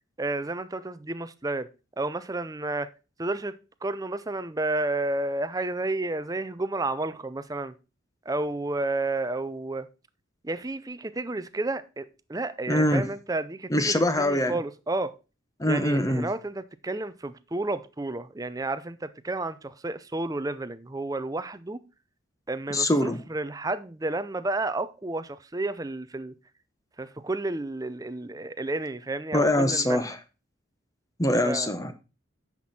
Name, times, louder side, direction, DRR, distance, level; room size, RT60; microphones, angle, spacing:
voice 1, 0.2-1.7 2.0-2.9 3.2-3.5 3.8-7.7 8.3-9.9 10.4-15.1 15.6-21.8 22.5-26.3 27.0-30.1 31.4-31.7, right 2 dB, 15° right, 0.5 m, -31 dB
voice 2, 12.7-13.0 13.7-14.6 15.6-16.3 22.7-23.2 29.3-30.2 31.2-31.9, left 1 dB, 15° left, 0.9 m, -23 dB
9.5 x 6.0 x 4.2 m
head